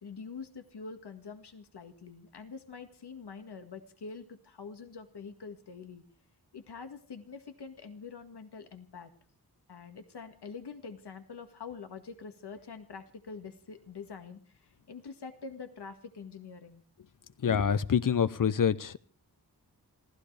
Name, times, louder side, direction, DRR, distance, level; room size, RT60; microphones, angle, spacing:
voice 1, 0.0-6.0 6.5-9.1 9.7-16.8, left 5 dB, 80° left, 1.9 m, -45 dB
voice 2, 17.4-19.0, left 7 dB, 55° left, 0.8 m, -26 dB
26.5 x 16.0 x 3.4 m
wide cardioid pair, 90°, 39 cm